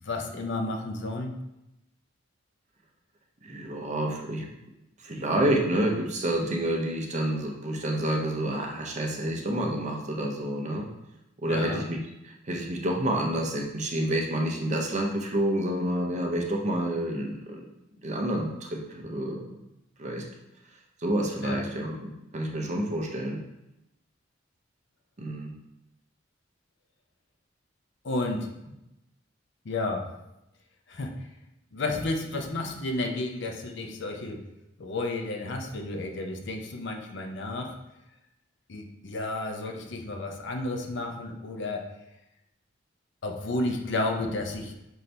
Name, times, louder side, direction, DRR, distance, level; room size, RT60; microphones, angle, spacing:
voice 1, 0.0-1.3 11.5-11.8 21.4-21.6 28.0-28.5 29.6-30.1 30.9-31.1 31.7-34.4 34.8-37.8 38.7-41.9 43.2-44.7, left 2 dB, 65° left, 3 dB, 0.6 m, -32 dB
voice 2, 3.4-4.5 5.0-10.9 11.4-17.6 18.0-19.6 20.0-20.2 21.0-23.4 25.2-25.5, right 1 dB, 40° right, 1 dB, 0.7 m, -29 dB
5.6 x 2.7 x 3.3 m, 0.89 s
head